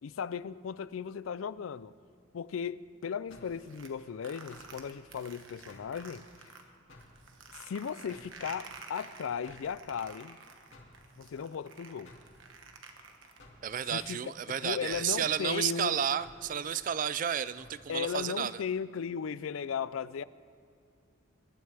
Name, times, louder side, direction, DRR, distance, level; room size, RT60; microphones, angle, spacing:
voice 1, 0.0-1.9 2.3-6.3 7.6-10.4 11.2-12.1 13.9-14.3 14.6-16.0 17.9-20.2, left 7 dB, 80° left, 17 dB, 0.4 m, -36 dB
sound 1, 3.3-3.6 4.5-4.8 5.7-6.0 6.9-7.2 8.1-8.4 9.4-9.7 10.7-11.0 12.0-12.3 13.4-13.6 14.8-15.1 16.2-16.5 17.5-17.8, left 2 dB, 65° left, 2.5 m, -54 dB
sound 2, 3.4-6.6 7.0-13.6, right 4 dB, 70° right, 1.3 m, -50 dB
voice 2, 13.6-18.6, right 8 dB, 40° right, 16 dB, 0.3 m, -32 dB
23.0 x 12.5 x 3.5 m, 2.4 s
head